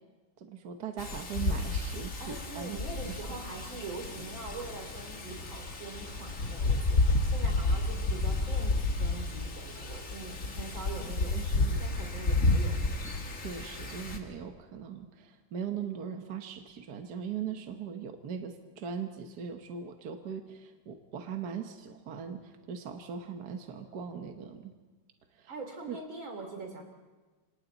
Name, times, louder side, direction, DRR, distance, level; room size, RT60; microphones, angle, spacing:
voice 1, 0.4-2.8 3.0-3.2 11.0-11.8 13.4-24.7 25.3-25.5 25.9-26.0, right 7 dB, 55° right, 5 dB, 1.6 m, -40 dB
Wind, 1.0-14.2, left 2 dB, 40° left, 2.2 m, -31 dB
voice 2, 2.2-11.4 11.8-12.8 25.5-26.8, right 3 dB, 80° right, 4 dB, 4.0 m, -43 dB
28.5 x 25.5 x 4.0 m, 1.3 s
omnidirectional pair, 2.1 m